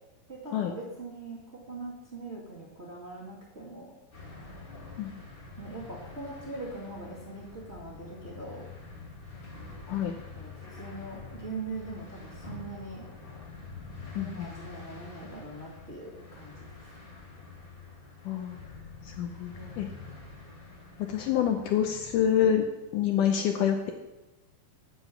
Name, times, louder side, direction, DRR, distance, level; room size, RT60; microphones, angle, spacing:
voice 1, 0.3-3.9 5.6-8.7 10.3-13.1 14.1-16.6 19.5-19.9, right 3 dB, 25° right, -7 dB, 1.7 m, -42 dB
sound 1, 4.1-22.5, left 4 dB, 55° left, 0.6 m, -46 dB
voice 2, 14.2-14.5 18.3-18.6 19.1-19.9 21.0-22.7 22.9-23.9, left 9 dB, 75° left, 4 dB, 2.0 m, -27 dB
9.1 x 7.8 x 5.8 m, 1.0 s
omnidirectional pair, 4.1 m